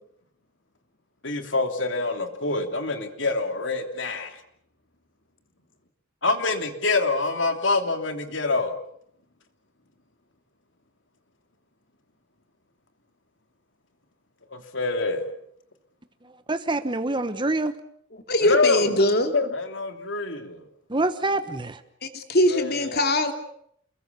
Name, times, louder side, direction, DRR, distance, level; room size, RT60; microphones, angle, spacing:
voice 1, 1.2-4.4 6.2-8.8 14.5-15.3 18.4-19.0 19.3-20.6 22.5-23.0, left 3 dB, 70° left, 7 dB, 3.1 m, -26 dB
voice 2, 16.5-17.7 20.9-21.8, right 2 dB, 25° right, 10 dB, 1.2 m, -26 dB
voice 3, 18.3-19.3 22.0-23.3, left 1 dB, 55° left, 6 dB, 3.1 m, -22 dB
29.0 x 21.5 x 6.9 m, 0.68 s
head